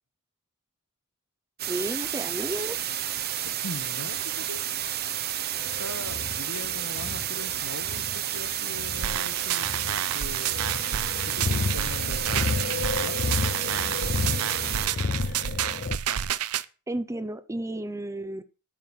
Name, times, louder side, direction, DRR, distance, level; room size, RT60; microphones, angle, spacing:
sound 1, 1.6-14.9, right 11 dB, 45° right, 1.0 m, -31 dB
voice 1, 1.7-2.8 16.9-18.4, right 1 dB, 15° right, 0.7 m, -32 dB
voice 2, 3.5-4.7 5.7-10.8 11.2-14.8, left 2 dB, 90° left, 1.8 m, -41 dB
sound 2, 5.6-16.0, left 3 dB, 40° left, 0.5 m, -32 dB
sound 3, 9.0-16.6, right 10 dB, 75° right, 0.7 m, -30 dB
11.0 x 6.4 x 7.5 m
head